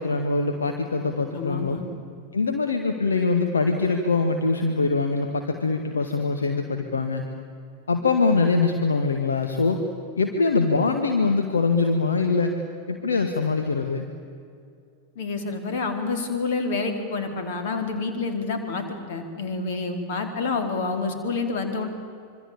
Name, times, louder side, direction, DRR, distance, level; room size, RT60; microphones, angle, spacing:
voice 1, 0.0-1.8 2.3-7.2 7.9-9.8 10.2-12.6 12.9-14.1, left 4 dB, 70° left, 5 dB, 1.9 m, -23 dB
voice 2, 1.3-1.8 15.2-21.9, left 4 dB, 50° left, 6 dB, 4.4 m, -28 dB
26.0 x 25.0 x 8.7 m, 2.4 s
figure-of-eight pair, 90°, 0 cm